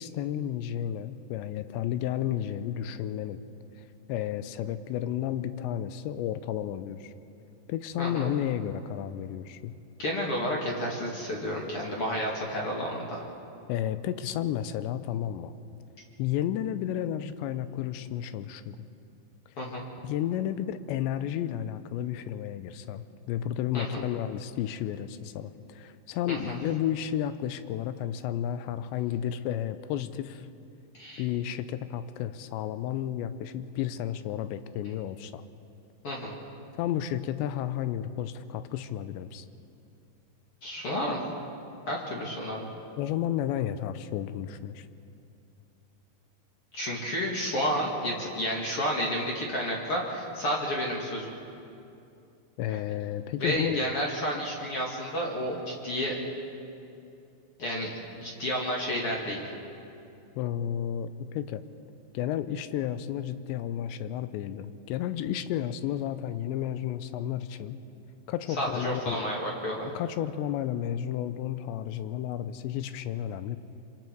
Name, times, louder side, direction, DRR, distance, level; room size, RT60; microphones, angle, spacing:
voice 1, 0.0-3.4 4.1-7.1 7.7-9.7 13.7-15.5 16.2-18.9 20.0-30.5 31.2-35.4 36.7-39.5 43.0-44.9 52.6-53.8 60.4-61.6 62.1-67.8 68.3-69.3 69.9-73.6, left 11 dB, 85° left, 12 dB, 3.0 m, -32 dB
voice 2, 8.0-8.3 10.0-13.2 19.6-19.8 23.7-24.0 26.3-26.6 30.9-31.2 36.0-36.4 40.6-41.2 41.9-42.6 46.7-51.3 52.7-52.8 53.4-56.2 57.6-59.4 68.6-69.8, equal, 40° left, -2 dB, 2.4 m, -31 dB
25.5 x 25.5 x 4.6 m, 2.6 s
omnidirectional pair, 5.0 m